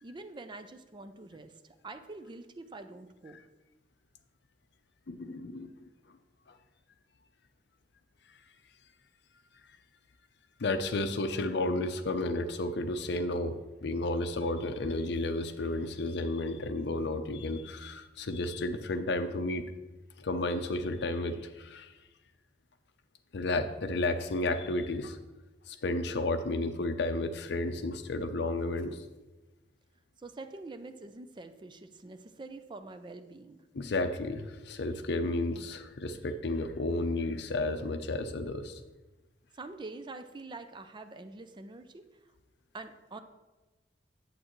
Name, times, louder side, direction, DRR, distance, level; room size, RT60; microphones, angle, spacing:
voice 1, 0.0-3.4 30.2-33.7 39.5-42.1 42.7-43.2, right 3 dB, 25° right, 9 dB, 0.4 m, -45 dB
voice 2, 5.1-5.7 10.6-19.7 20.2-21.9 23.3-25.2 25.7-29.0 33.7-38.8, left 2 dB, 65° left, 9 dB, 0.6 m, -32 dB
8.6 x 7.8 x 3.1 m, 1.1 s
head